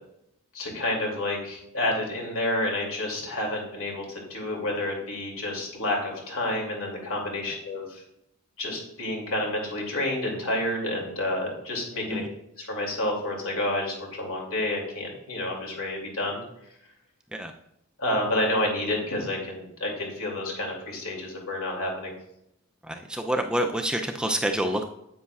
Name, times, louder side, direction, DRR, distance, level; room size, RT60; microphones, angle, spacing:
voice 1, 0.5-8.0 8.6-12.2 12.6-16.4 18.0-22.1, left 1 dB, 70° left, 0 dB, 2.5 m, -29 dB
voice 2, 22.8-24.8, right 1 dB, 5° right, 3 dB, 0.4 m, -27 dB
9.5 x 8.3 x 2.4 m, 0.80 s
head